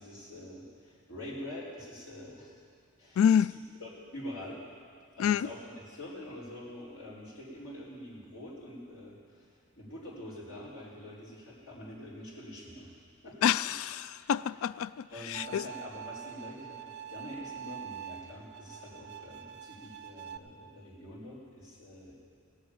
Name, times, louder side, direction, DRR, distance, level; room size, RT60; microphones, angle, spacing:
voice 1, 0.0-2.5 3.0-3.2 3.8-4.6 5.2-9.5 9.7-13.0 13.2-13.4 15.1-22.2, left 1 dB, 85° left, -8 dB, 5.1 m, -45 dB
voice 2, 3.2-3.5 5.2-5.5 13.4-15.7, left 8 dB, 70° left, 17 dB, 0.3 m, -27 dB
Bowed string instrument, 15.3-20.4, right 9 dB, 55° right, 0.6 m, -45 dB
17.0 x 7.9 x 9.0 m, 2.3 s
head